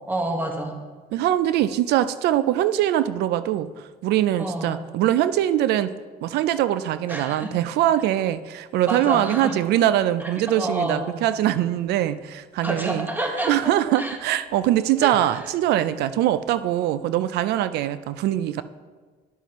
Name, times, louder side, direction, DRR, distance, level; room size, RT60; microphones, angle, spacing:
voice 1, 0.0-0.8 4.4-4.7 7.1-7.5 8.9-9.6 10.2-11.1 12.6-13.5 14.0-14.2 15.0-15.2, right 2 dB, 10° right, 2 dB, 1.3 m, -28 dB
voice 2, 1.1-3.7 4.0-5.9 6.2-13.1 13.5-18.6, right 12 dB, 75° right, 14 dB, 0.4 m, -22 dB
11.0 x 7.0 x 3.0 m, 1.4 s
cardioid pair, 110°, 17 cm